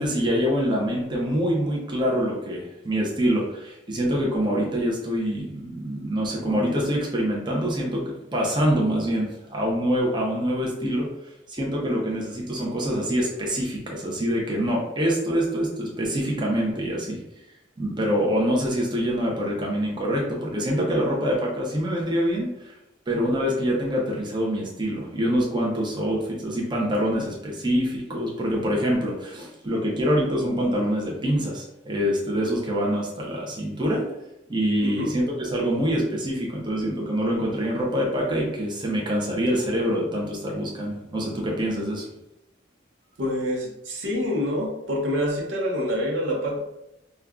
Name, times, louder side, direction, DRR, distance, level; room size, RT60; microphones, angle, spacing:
voice 1, 0.0-11.1 11.5-17.2 17.8-22.8 23.1-34.1 34.5-42.1, equal, 25° right, -3 dB, 0.6 m, -25 dB
voice 2, 43.2-46.6, equal, 80° right, 0 dB, 0.8 m, -26 dB
5.1 x 2.3 x 2.3 m, 0.87 s
head